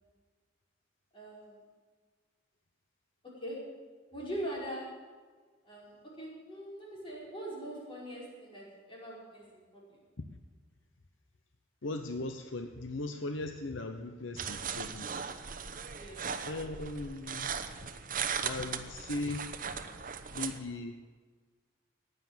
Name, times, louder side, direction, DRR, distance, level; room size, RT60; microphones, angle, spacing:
voice 1, 1.1-1.6 3.4-3.6 4.1-4.9 5.6-9.8 15.9-16.2, right 1 dB, 25° left, -4 dB, 5.0 m, -42 dB
voice 2, 11.8-15.1 16.5-17.6 18.4-19.5 20.3-20.9, left 2 dB, 75° left, 7 dB, 0.9 m, -38 dB
sound 1, 14.4-20.6, right 7 dB, 45° right, 0.9 m, -38 dB
15.5 x 9.6 x 7.4 m, 1.5 s
head